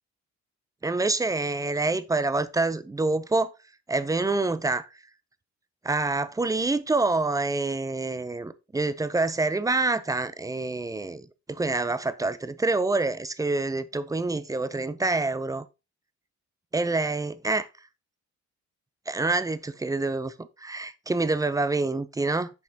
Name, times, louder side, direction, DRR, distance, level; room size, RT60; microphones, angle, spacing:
voice 1, 0.8-3.5 3.9-4.9 5.8-15.7 16.7-17.7 19.1-22.5, right 3 dB, 10° right, 0.5 m, -27 dB
7.1 x 4.9 x 2.8 m
cardioid pair, 90°, 30 cm